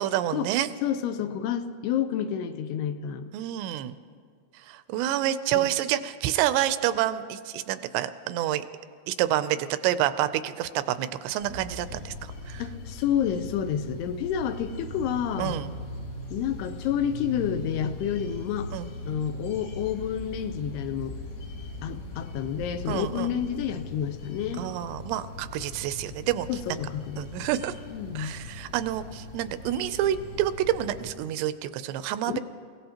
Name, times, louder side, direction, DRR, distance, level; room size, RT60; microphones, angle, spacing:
voice 1, 0.0-0.7 3.3-4.0 4.6-8.6 9.1-12.6 15.4-15.7 18.7-18.9 22.9-23.3 24.6-26.8 27.2-27.8 28.2-32.4, right 12 dB, 85° right, 12 dB, 2.8 m, -28 dB
voice 2, 0.8-3.3 5.5-5.7 12.6-15.6 16.3-18.7 19.0-21.2 21.8-24.7 26.5-27.5 27.9-28.4 32.3-32.4, left 9 dB, 80° left, 9 dB, 2.6 m, -29 dB
sound 1, 11.4-31.1, left 2 dB, 50° left, 2.6 m, -40 dB
28.5 x 16.5 x 2.9 m, 2.1 s
omnidirectional pair, 4.8 m